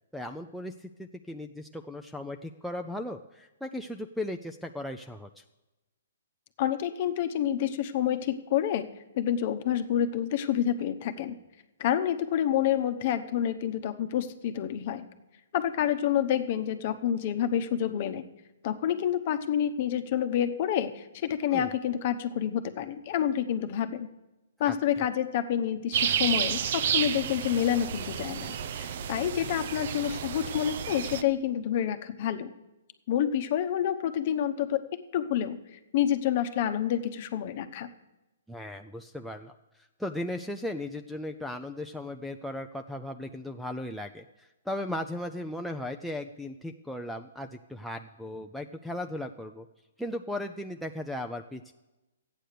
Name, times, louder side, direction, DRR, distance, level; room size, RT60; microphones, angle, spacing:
voice 1, 0.1-5.4 21.5-21.7 24.6-25.1 38.5-39.5 40.0-49.7 50.0-51.7, left 1 dB, ahead, 6 dB, 0.4 m, -37 dB
voice 2, 6.6-8.9 9.1-11.4 11.8-15.1 15.5-18.2 18.6-24.1 24.6-32.5 33.1-37.9, left 10 dB, 40° left, 8 dB, 0.9 m, -28 dB
sound 1, 25.9-31.2, right 8 dB, 50° right, 0.6 m, -31 dB
13.5 x 9.1 x 6.7 m, 1.0 s
hypercardioid pair, 160°, 0 cm